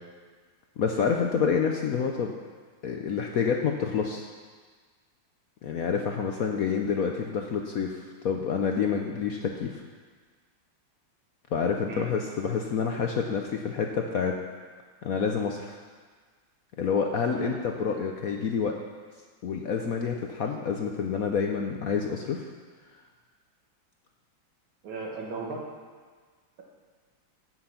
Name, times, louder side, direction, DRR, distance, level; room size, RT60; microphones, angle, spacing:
voice 1, 0.8-2.3 2.8-4.3 5.6-9.8 11.5-14.4 15.0-15.8 16.8-18.8 19.4-22.4, left 6 dB, 65° left, 2 dB, 0.9 m, -28 dB
voice 2, 17.3-17.6 24.8-25.6, right 3 dB, 80° right, -1 dB, 2.4 m, -36 dB
15.5 x 6.1 x 5.8 m, 1.5 s
omnidirectional pair, 2.2 m